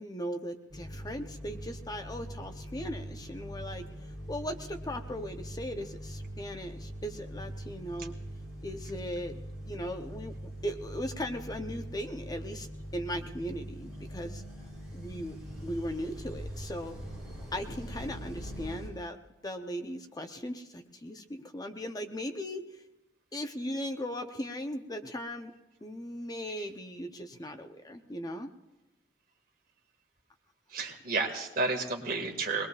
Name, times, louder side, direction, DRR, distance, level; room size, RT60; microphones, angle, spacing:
voice 1, 0.0-3.9 4.3-8.2 8.6-12.7 12.9-14.4 14.9-15.4 15.6-17.0 17.5-19.2 19.4-22.6 23.3-25.5 25.8-28.5, equal, 20° left, 6 dB, 0.7 m, -38 dB
sound 1, 0.7-18.9, equal, 5° right, 6.0 m, -42 dB
voice 2, 30.7-32.7, right 3 dB, 55° right, 2 dB, 2.0 m, -31 dB
23.0 x 20.0 x 2.4 m, 1.0 s
head